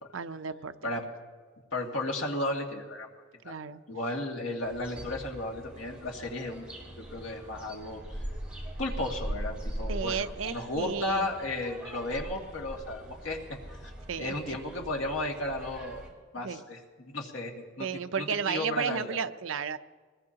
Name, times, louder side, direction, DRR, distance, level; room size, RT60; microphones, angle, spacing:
voice 1, 0.1-0.9 3.4-3.8 9.9-11.3 14.1-14.6 16.4-16.6 17.8-19.8, right 6 dB, 80° right, 11 dB, 0.6 m, -33 dB
voice 2, 1.7-3.1 3.4-3.5 3.9-6.7 7.1-8.2 8.8-13.4 13.8-13.9 14.2-16.0 16.3-16.8 17.1-17.9 18.2-19.2, left 2 dB, 85° left, 0 dB, 2.3 m, -34 dB
sound 1, 4.6-16.1, equal, 5° right, 3.1 m, -41 dB
23.0 x 20.5 x 2.9 m, 1.5 s
head